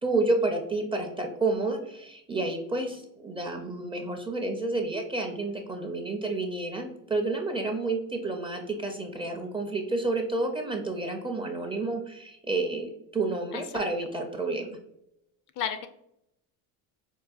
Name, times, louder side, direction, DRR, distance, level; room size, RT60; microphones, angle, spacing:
voice 1, 0.0-14.8, right 2 dB, 15° right, 3 dB, 0.4 m, -30 dB
voice 2, 13.5-13.8 15.6-15.9, left 9 dB, 50° left, 9 dB, 0.4 m, -33 dB
4.6 x 2.3 x 2.4 m, 0.80 s
supercardioid pair, 95°, 42 cm